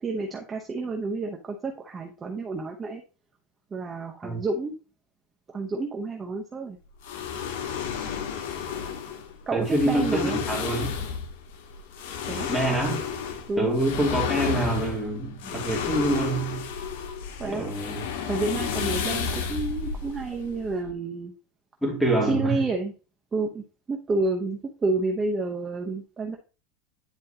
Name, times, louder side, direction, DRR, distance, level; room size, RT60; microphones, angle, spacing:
voice 1, 0.0-3.0 3.7-4.8 5.5-6.8 9.5-10.4 12.3-12.5 13.5-13.7 17.4-17.7 18.3-21.3 22.2-22.9 23.3-26.4, right 3 dB, 15° right, 0.8 m, -29 dB
sound 1, 7.0-20.9, left 7 dB, 85° left, 1.4 m, -32 dB
voice 2, 9.5-10.9 12.5-13.0 13.6-16.6 17.4-18.1 21.8-22.5, right 1 dB, ahead, 2.4 m, -26 dB
9.9 x 4.5 x 2.8 m
supercardioid pair, 160°, 0 cm